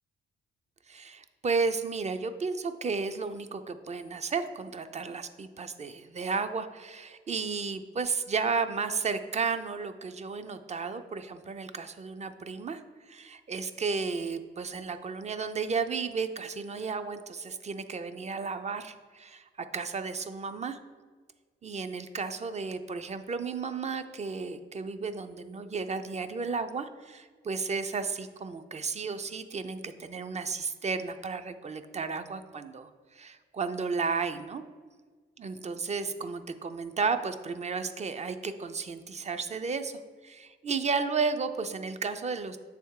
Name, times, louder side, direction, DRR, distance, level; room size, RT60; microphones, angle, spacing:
voice 1, 0.9-20.8 21.6-34.6 35.4-42.6, right 4 dB, 30° right, 10 dB, 0.5 m, -33 dB
7.1 x 3.4 x 4.7 m, 1.5 s
cardioid pair, 65°, 21 cm